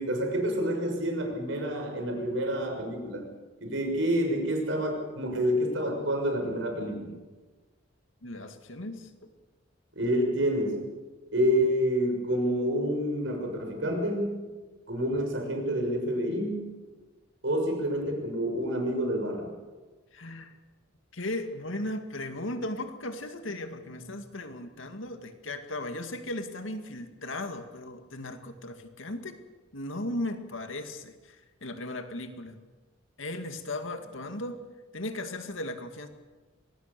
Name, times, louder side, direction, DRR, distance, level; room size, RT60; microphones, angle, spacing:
voice 1, 0.0-3.2 3.6-7.1 10.0-10.8 11.3-14.3 14.9-16.6 17.4-19.5, equal, 70° right, 3 dB, 6.3 m, -28 dB
voice 2, 8.2-9.3 20.1-20.5 21.1-29.4 29.7-32.6 33.2-34.6 34.9-36.1, left 1 dB, 80° left, 7 dB, 2.2 m, -36 dB
24.5 x 19.5 x 6.9 m, 1.3 s
head